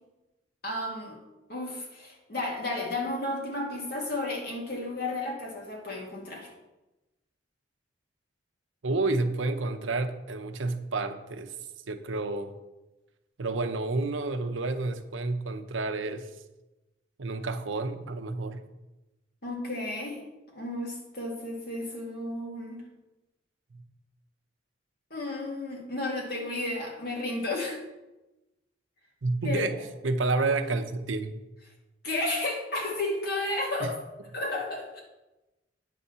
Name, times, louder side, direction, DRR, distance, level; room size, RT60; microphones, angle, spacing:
voice 1, 0.6-1.2 1.5-6.5 19.4-20.2 20.5-22.8 25.1-27.8 29.4-29.7 32.0-34.0 34.3-35.0, left 2 dB, 55° left, -2 dB, 2.1 m, -32 dB
voice 2, 8.8-11.5 11.9-12.5 13.4-16.3 17.2-18.6 23.7-23.8 29.2-29.8 30.0-31.3 33.8-33.9, right 3 dB, 90° right, 7 dB, 0.7 m, -30 dB
9.2 x 4.2 x 6.7 m, 1.0 s
head